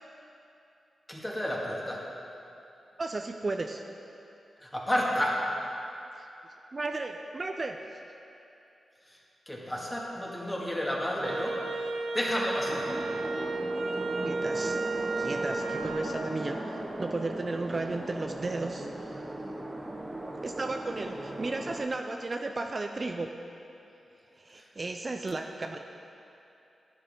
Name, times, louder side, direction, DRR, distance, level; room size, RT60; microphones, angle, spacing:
voice 1, 1.1-2.0 4.6-5.5 9.1-9.2 9.5-11.6 12.1-12.9 24.5-24.7, equal, 15° left, -3 dB, 2.2 m, -31 dB
voice 2, 3.0-3.8 6.2-6.3 6.7-7.8 14.2-14.8 15.2-19.2 20.4-23.3 24.4-25.8, right 3 dB, 40° right, 4 dB, 0.5 m, -34 dB
Wind instrument woodwind instrument, 11.2-16.1, right 3 dB, 65° right, 0.8 m, -33 dB
sound 1, 12.6-21.9, right 1 dB, 25° right, 1.0 m, -38 dB
11.5 x 10.0 x 3.8 m, 2.8 s
cardioid pair, 60°, 0 cm